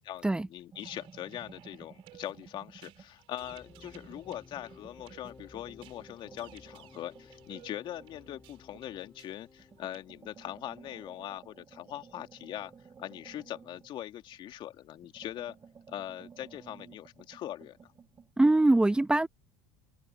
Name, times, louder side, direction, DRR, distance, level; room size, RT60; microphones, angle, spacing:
voice 1, 0.1-12.7 13.0-15.6 15.9-17.9, left 12 dB, 55° left, 2.5 m, -42 dB
sound 1, 0.7-3.2 3.5-9.1 9.6-14.6 14.9-18.3, right 6 dB, 30° right, 3.9 m, -55 dB
sound 2, 0.8-10.0, right 17 dB, 65° right, 3.6 m, -59 dB
sound 3, 3.4-11.3, left 5 dB, 25° left, 3.0 m, -57 dB
voice 2, 18.4-19.3, right 2 dB, 10° right, 0.9 m, -23 dB
supercardioid pair, 90°, 10 cm